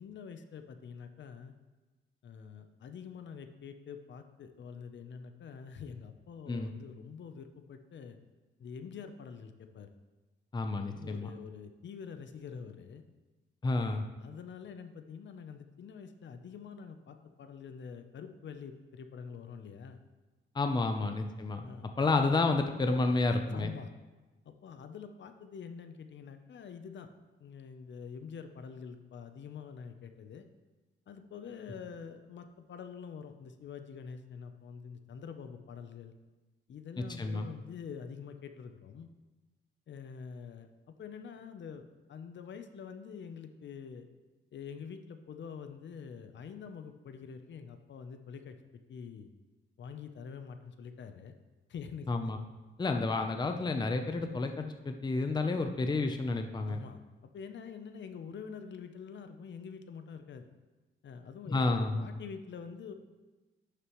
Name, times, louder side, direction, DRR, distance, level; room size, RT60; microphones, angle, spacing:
voice 1, 0.0-1.5 2.2-8.2 8.6-9.9 10.7-13.0 13.7-20.0 21.6-21.9 23.5-23.9 24.4-27.1 27.4-30.5 31.1-36.1 36.7-39.1 39.9-41.8 42.1-44.1 44.5-48.6 48.9-49.3 49.8-51.3 51.7-52.3 52.9-53.0 56.6-60.5 61.0-62.9, left 6 dB, 60° left, 8 dB, 0.7 m, -46 dB
voice 2, 10.5-11.3 13.6-14.1 20.5-21.6 22.0-23.7 37.0-37.5 52.1-52.4 52.8-56.8 61.5-62.1, left 3 dB, 20° left, 6 dB, 0.6 m, -30 dB
11.0 x 6.7 x 3.1 m, 1.2 s
cardioid pair, 120°, 21 cm